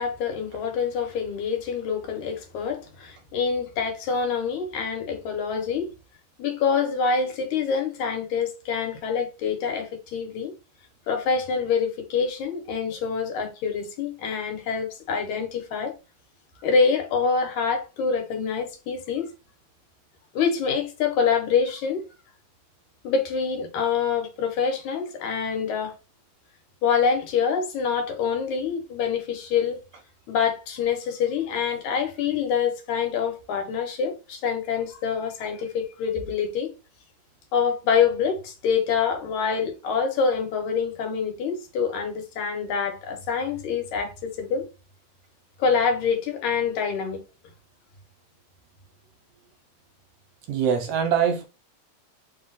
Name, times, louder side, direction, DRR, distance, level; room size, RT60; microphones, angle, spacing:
voice 1, 0.0-5.9 6.4-10.5 11.1-15.9 16.6-19.3 20.3-22.0 23.0-26.0 26.8-29.8 30.3-36.7 37.5-44.7 45.6-47.2, left 6 dB, 75° left, 2.3 m, -26 dB
voice 2, 50.5-51.4, right 7 dB, 75° right, 1.9 m, -23 dB
4.7 x 2.4 x 3.9 m
omnidirectional pair, 3.4 m